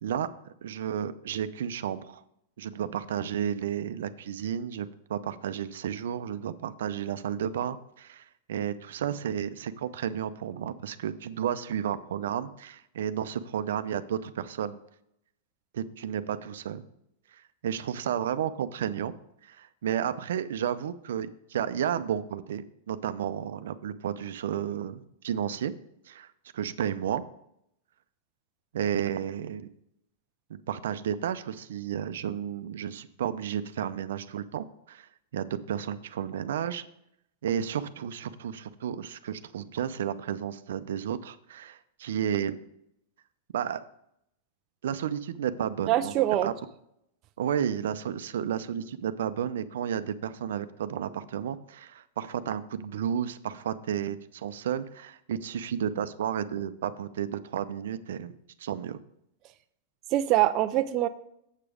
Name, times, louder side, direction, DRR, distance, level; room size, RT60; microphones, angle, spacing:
voice 1, 0.6-2.2 2.6-14.8 15.7-16.8 17.6-19.1 19.4-25.7 26.1-26.3 26.5-27.2 28.7-29.7 30.5-36.8 37.4-42.5 43.5-43.8 44.8-46.1 46.4-46.5 47.4-58.3 58.6-59.0, right 9 dB, 80° right, 12 dB, 0.6 m, -32 dB
voice 2, 45.9-46.5 60.1-61.1, right 14 dB, 35° right, 10 dB, 0.4 m, -24 dB
7.4 x 7.0 x 4.9 m, 0.77 s
supercardioid pair, 155°, 0 cm